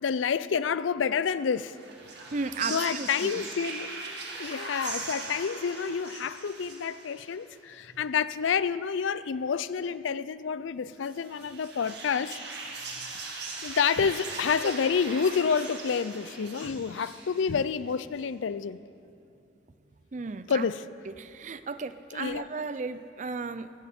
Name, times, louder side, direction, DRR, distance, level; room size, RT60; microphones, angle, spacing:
voice 1, 0.0-1.7 2.7-3.9 4.4-12.4 13.6-18.8 20.5-20.8 22.1-22.4, left 6 dB, 80° left, 0.4 m, -28 dB
sound 1, 1.5-7.5 11.0-17.9, right 3 dB, 60° right, 2.2 m, -40 dB
voice 2, 2.3-3.4 13.0-13.1 13.7-13.8 20.1-20.7 21.1-23.7, right 4 dB, 40° right, 0.5 m, -35 dB
16.5 x 16.0 x 4.3 m
head